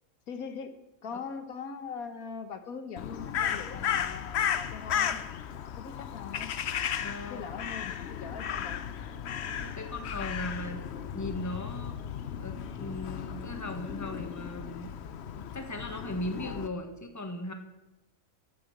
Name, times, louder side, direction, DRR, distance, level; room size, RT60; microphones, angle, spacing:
voice 1, 0.3-0.7 1.0-5.2 5.8-6.5 7.3-8.8, left 6 dB, 85° left, 8 dB, 1.7 m, -41 dB
Crow, 3.0-16.7, left 8 dB, 60° left, 0.9 m, -35 dB
voice 2, 7.0-7.7 9.4-10.8 11.1-12.0 12.4-15.0 15.2-17.5, left 1 dB, 15° left, 5 dB, 1.4 m, -38 dB
sound 1, 7.6-10.0 10.3-11.9, right 2 dB, 70° right, 5.3 m, -61 dB
12.5 x 8.8 x 7.9 m, 0.96 s
omnidirectional pair, 1.5 m